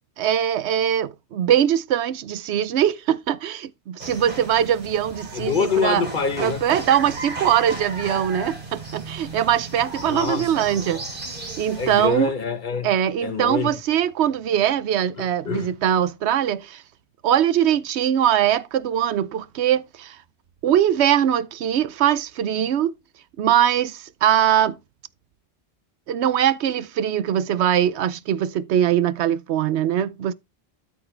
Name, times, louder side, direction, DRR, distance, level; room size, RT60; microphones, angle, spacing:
voice 1, 0.2-6.0 6.4-11.2 11.6-12.3 12.8-16.8 17.2-20.2 20.6-22.9 23.4-24.8 26.1-30.3, right 10 dB, 85° right, 0.9 m, -21 dB
sound 1, 4.0-12.1, right 2 dB, 50° right, 3.1 m, -35 dB
voice 2, 5.3-6.6 10.1-10.5 11.8-12.9 13.2-13.7 15.4-15.7, left 5 dB, 50° left, 1.2 m, -25 dB
13.0 x 4.4 x 3.2 m
omnidirectional pair, 1.1 m